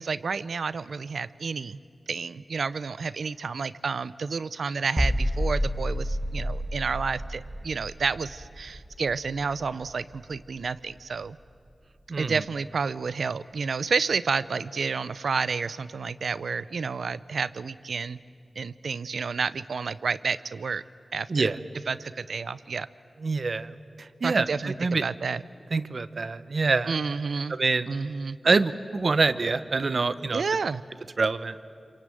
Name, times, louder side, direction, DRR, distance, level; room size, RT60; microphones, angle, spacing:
voice 1, 0.0-1.8 2.1-11.4 12.2-18.2 18.6-20.8 21.1-21.5 21.9-22.9 24.2-25.4 26.9-27.6 27.9-28.4 30.3-30.8, right 5 dB, 85° right, 16 dB, 0.6 m, -30 dB
sound 1, 5.0-10.7 10.9-11.2, equal, 15° right, 1.7 m, -30 dB
voice 2, 23.2-25.0 25.7-26.9 27.5-27.9 28.4-30.4 31.2-31.5, right 4 dB, 70° right, 13 dB, 0.9 m, -25 dB
26.5 x 23.5 x 9.2 m, 2.3 s
cardioid pair, 45°, 0 cm